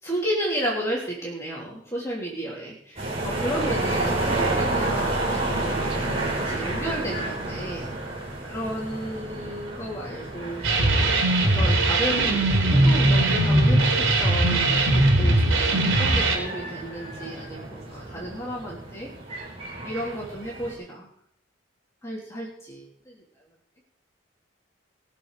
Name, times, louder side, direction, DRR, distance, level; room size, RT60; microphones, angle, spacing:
voice 1, 0.0-7.9 8.5-11.0 11.5-19.1 19.8-21.1 22.0-23.2, right 1 dB, 15° left, -5 dB, 3.3 m, -33 dB
sound 1, 3.0-20.7, right 2 dB, 30° right, 4.4 m, -31 dB
sound 2, 10.6-16.4, right 2 dB, 80° right, 4.1 m, -20 dB
20.5 x 7.2 x 6.6 m, 0.66 s
head